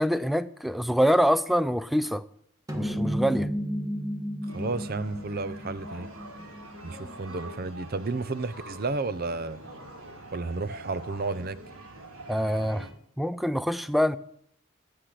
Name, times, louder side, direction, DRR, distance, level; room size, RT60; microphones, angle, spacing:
voice 1, 0.0-2.2 2.7-3.5 12.3-12.9 13.2-14.2, equal, ahead, 15 dB, 0.4 m, -25 dB
sound 1, 2.7-7.3, equal, 15° right, 1.4 m, -33 dB
voice 2, 4.5-6.1 6.8-9.6 10.3-11.6, right 3 dB, 45° right, 16 dB, 0.6 m, -32 dB
sound 2, 4.5-12.9, right 1 dB, 85° right, 3.3 m, -44 dB
16.0 x 6.7 x 7.5 m, 0.68 s
head